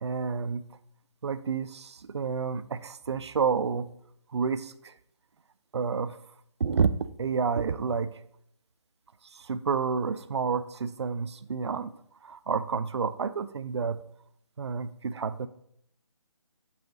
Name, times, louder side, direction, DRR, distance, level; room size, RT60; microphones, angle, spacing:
voice 1, 0.0-0.6 1.2-3.9 4.3-4.9 5.7-6.2 6.6-6.9 7.2-8.2 9.3-11.9 12.2-14.0 14.6-15.5, right 5 dB, 60° right, 14 dB, 0.4 m, -29 dB
8.1 x 3.3 x 3.9 m, 0.72 s
figure-of-eight pair, 150°, 16 cm